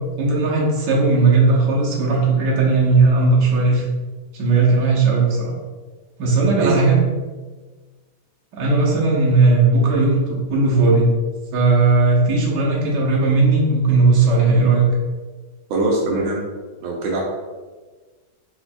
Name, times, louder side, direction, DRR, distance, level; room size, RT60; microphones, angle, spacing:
voice 1, 0.2-3.8 4.3-5.5 6.2-7.0 8.5-11.1 11.5-14.9, right 3 dB, 60° right, -4 dB, 1.6 m, -17 dB
voice 2, 6.4-6.8 15.7-16.4 16.8-17.2, right 2 dB, 85° right, -1 dB, 1.5 m, -22 dB
4.7 x 4.6 x 2.3 m, 1.3 s
omnidirectional pair, 2.2 m